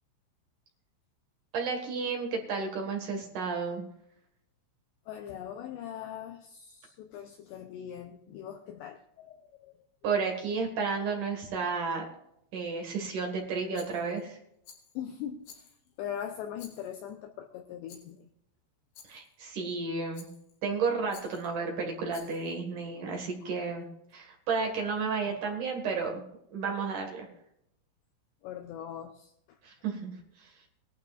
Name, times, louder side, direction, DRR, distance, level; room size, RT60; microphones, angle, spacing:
voice 1, 1.5-3.9 10.0-12.0 12.5-14.4 19.1-20.3 20.6-23.9 24.1-26.2 26.5-27.3 29.6-30.1 30.4-30.5, right 4 dB, 60° right, 2 dB, 2.3 m, -32 dB
voice 2, 5.1-9.7 15.0-15.7 16.0-18.3 25.4-25.6 28.4-29.3, left 9 dB, 90° left, 5 dB, 2.5 m, -41 dB
Rattle, 13.7-14.2 14.6-15.0 15.4-16.0 16.6-17.1 17.9-18.2 18.9-19.3 20.1-20.6 21.1-21.5 22.1-22.6, left 7 dB, 55° left, 3.9 m, -53 dB
20.0 x 12.0 x 2.5 m, 0.77 s
omnidirectional pair, 5.9 m